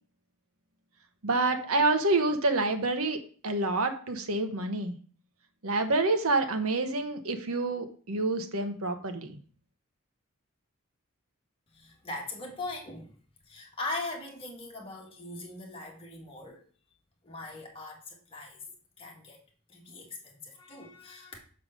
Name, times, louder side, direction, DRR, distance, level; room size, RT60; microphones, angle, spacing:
voice 1, 1.2-4.9 5.6-9.4, right 2 dB, 75° right, 1.1 m, -28 dB
voice 2, 11.7-13.1 13.5-16.6 17.2-18.6 19.0-19.4 19.7-21.4, left 2 dB, 25° left, 1.9 m, -40 dB
5.7 x 5.0 x 6.6 m
head